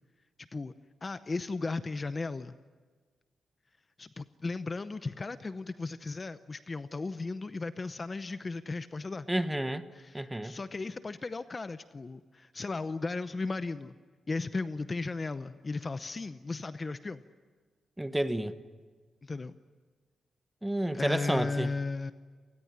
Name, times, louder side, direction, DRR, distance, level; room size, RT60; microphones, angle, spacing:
voice 1, 0.4-0.7 1.0-2.5 4.0-9.3 9.9-13.9 14.3-17.2 19.2-19.6 20.9-22.1, left 3 dB, 25° left, 0.7 m, -36 dB
voice 2, 9.3-9.8 10.1-10.6 18.0-18.5 20.6-21.7, right 1 dB, 5° right, 1.2 m, -30 dB
29.0 x 19.5 x 9.9 m
wide cardioid pair, 130°, 0 cm